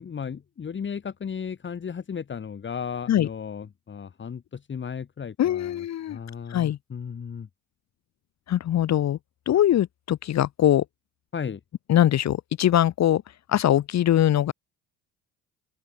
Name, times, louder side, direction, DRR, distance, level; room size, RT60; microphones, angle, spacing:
voice 1, 0.0-7.5 11.3-11.6, left 7 dB, 35° left, 2.4 m, -35 dB
voice 2, 5.4-6.2 6.5-6.8 8.5-9.2 9.5-10.8 11.9-13.2 13.5-14.5, left 11 dB, 55° left, 2.1 m, -22 dB
open air
supercardioid pair, 80°, 32 cm